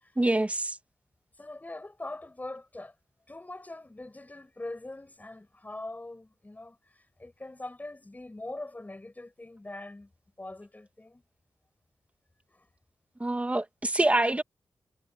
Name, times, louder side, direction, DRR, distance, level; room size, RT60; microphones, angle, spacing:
voice 1, 0.2-0.8 13.2-14.4, right 2 dB, 20° right, 1.4 m, -26 dB
voice 2, 1.4-2.9 3.3-6.8 7.2-10.1 10.4-11.2 12.5-12.6, left 2 dB, 20° left, 6.8 m, -42 dB
cardioid pair, 75°, 7 cm